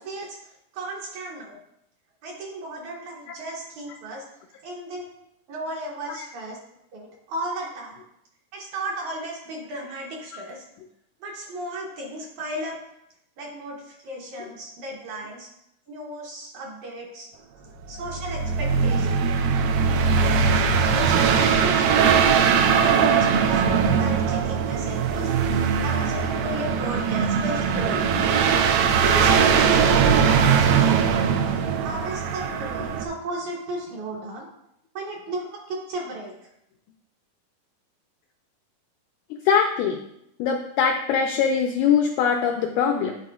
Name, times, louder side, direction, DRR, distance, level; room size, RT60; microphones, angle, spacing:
voice 1, 0.0-1.6 2.2-4.3 4.6-5.0 5.5-6.6 6.9-8.0 8.5-10.6 11.2-12.8 13.4-15.5 15.9-17.3 17.9-19.3 19.9-20.2 20.6-22.2 22.8-25.3 25.8-28.2 29.0-31.3 31.8-34.5 35.0-36.4, right 1 dB, 70° right, -1 dB, 2.0 m, -34 dB
sound 1, 17.9-33.1, right 6 dB, 90° right, 2.3 m, -20 dB
voice 2, 39.4-40.0 40.4-43.1, left 7 dB, 85° left, 3 dB, 1.7 m, -22 dB
11.0 x 4.1 x 2.3 m, 0.79 s
omnidirectional pair, 3.9 m